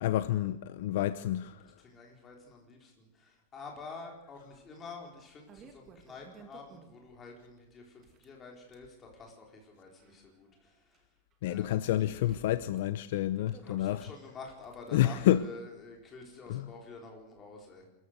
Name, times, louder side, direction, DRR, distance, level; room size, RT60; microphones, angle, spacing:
voice 1, 0.0-1.6 11.4-14.1 14.9-15.4 16.5-16.7, left 13 dB, 55° left, 0.8 m, -29 dB
voice 2, 1.6-11.0 11.4-11.8 13.6-17.9, left 4 dB, 15° left, 4.1 m, -49 dB
sound 1, 4.5-4.6 5.1-7.2 7.9-8.9 9.6-11.0 11.3-11.4 12.1-13.9 14.6-15.3, right 6 dB, 20° right, 2.0 m, -56 dB
26.5 x 14.0 x 8.0 m
supercardioid pair, 180°, 0 cm